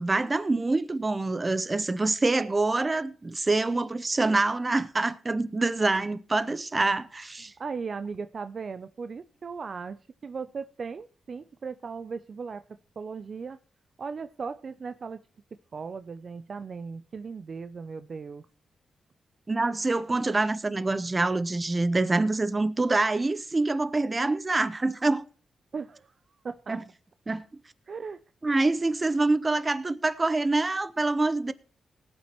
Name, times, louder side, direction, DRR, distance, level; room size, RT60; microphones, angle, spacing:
voice 1, 0.0-7.5 19.5-25.2 26.7-26.8 27.3-27.4 28.4-31.5, right 2 dB, 30° right, 0.8 m, -26 dB
voice 2, 7.6-12.6 13.0-13.6 14.0-15.2 15.7-18.5 25.7-26.1 26.4-26.8 27.9-28.2, right 5 dB, 55° right, 0.5 m, -37 dB
19.0 x 8.6 x 3.0 m
cardioid pair, 60°, 0 cm